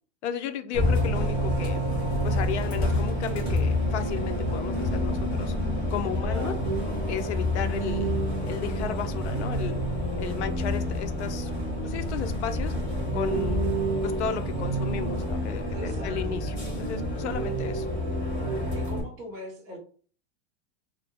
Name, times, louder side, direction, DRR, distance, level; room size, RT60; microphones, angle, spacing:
voice 1, 0.2-1.8 2.2-5.5 5.9-6.5 7.1-8.1 8.4-9.8 10.2-11.5 11.8-12.7 13.1-13.8 14.0-17.9, left 9 dB, 70° left, 9 dB, 0.5 m, -34 dB
Bus, 0.7-19.0, equal, 20° left, 0.8 m, -28 dB
voice 2, 6.2-6.7 15.7-16.4 18.7-19.8, equal, 10° right, -7 dB, 0.4 m, -41 dB
2.5 x 2.0 x 3.4 m, 0.42 s
supercardioid pair, 175°, 35 cm